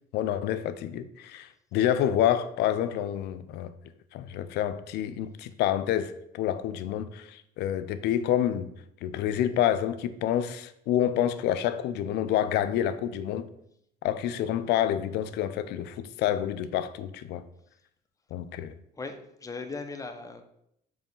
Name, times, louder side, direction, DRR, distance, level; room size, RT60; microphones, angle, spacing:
voice 1, 0.1-3.7 4.1-8.7 9.0-13.5 14.0-17.4 18.3-18.7, left 11 dB, 80° left, 0.5 m, -28 dB
voice 2, 19.0-20.4, left 3 dB, 20° left, 0.8 m, -38 dB
6.9 x 3.1 x 5.3 m
cardioid pair, 110°, 17 cm